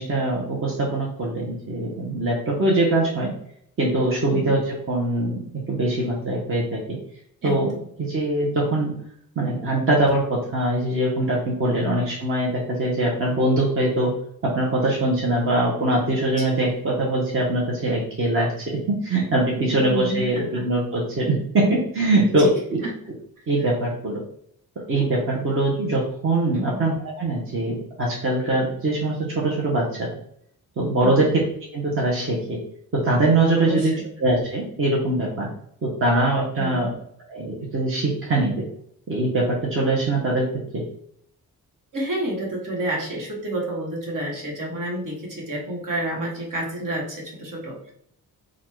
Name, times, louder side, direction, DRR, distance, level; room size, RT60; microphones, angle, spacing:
voice 1, 0.0-3.3 3.8-5.4 5.7-6.8 7.4-7.7 8.0-8.9 9.4-14.1 14.4-18.5 18.9-22.5 23.5-24.2 24.9-30.1 30.8-31.4 31.7-32.6 32.9-33.9 34.2-35.5 35.8-36.9 37.3-38.7 39.1-40.5 40.7-40.8, right 2 dB, 35° right, -3 dB, 0.9 m, -22 dB
voice 2, 7.4-7.8 11.8-12.0 16.4-16.5 19.7-20.6 22.3-22.5 22.8-22.9 26.5-26.8 31.0-31.3 33.6-34.1 36.5-36.9 41.9-47.9, right 1 dB, 55° right, -2 dB, 1.5 m, -30 dB
4.2 x 2.4 x 4.4 m, 0.69 s
wide cardioid pair, 140°, 37 cm